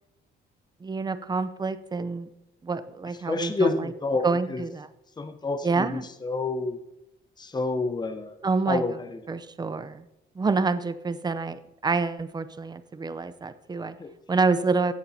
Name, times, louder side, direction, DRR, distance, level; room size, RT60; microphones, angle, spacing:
voice 1, 0.8-2.3 2.6-3.9 4.2-4.9 5.6-6.1 8.4-8.8 9.3-10.1 10.3-14.0 14.3-14.9, right 4 dB, 20° right, 12 dB, 0.6 m, -27 dB
voice 2, 3.3-4.6 5.2-6.8 7.4-8.4 8.7-9.2 14.0-14.1, left 3 dB, 20° left, 8 dB, 0.8 m, -28 dB
16.5 x 7.0 x 2.8 m, 0.87 s
cardioid pair, 90°, 20 cm